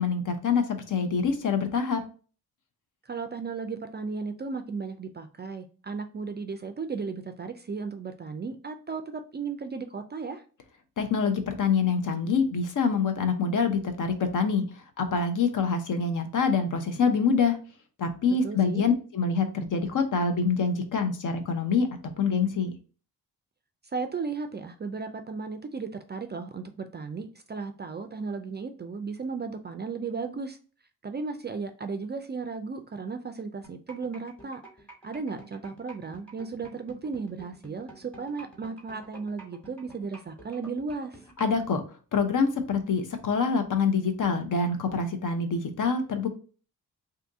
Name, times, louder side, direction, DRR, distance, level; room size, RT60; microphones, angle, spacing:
voice 1, 0.0-2.0 11.0-17.6 18.0-21.9 22.2-22.7 41.4-41.8 42.1-46.3, left 5 dB, 55° left, 7 dB, 0.7 m, -26 dB
voice 2, 3.1-10.4 18.4-18.8 23.9-30.6 31.0-34.6 35.0-41.2, right 4 dB, 30° right, 7 dB, 0.3 m, -35 dB
sound 1, 33.6-41.6, right 2 dB, 5° left, 1.3 m, -48 dB
2.7 x 2.5 x 3.5 m, 0.38 s
cardioid pair, 70°, 37 cm